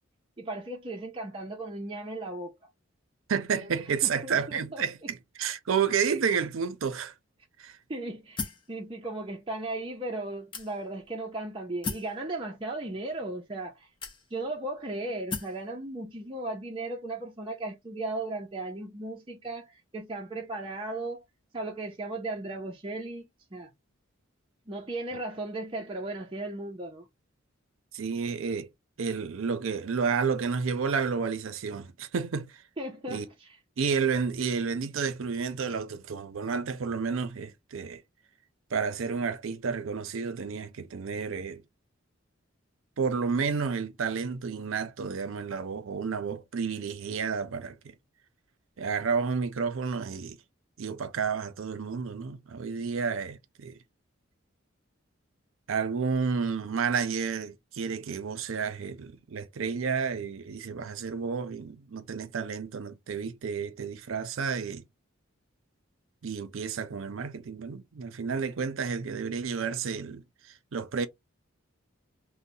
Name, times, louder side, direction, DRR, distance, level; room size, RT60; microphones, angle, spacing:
voice 1, 0.4-2.6 3.6-3.7 4.0-5.1 7.9-13.9 14.3-21.2 21.5-23.7 24.7-27.1 32.8-33.6, right 2 dB, 25° right, 0.5 m, -36 dB
voice 2, 3.3-7.1 7.6-7.7 27.9-28.7 29.0-32.5 33.1-33.3 33.8-38.0 38.7-41.6 43.0-47.8 48.8-50.4 50.8-53.8 55.7-64.8 66.2-70.2 70.7-71.1, right 6 dB, 75° right, 0.5 m, -31 dB
sound 1, 8.4-8.7 9.5-9.6 10.5-11.0 11.8-12.2 13.1-13.2 14.0-14.5 15.3-15.6, left 4 dB, 25° left, 0.6 m, -36 dB
2.7 x 2.1 x 4.0 m
head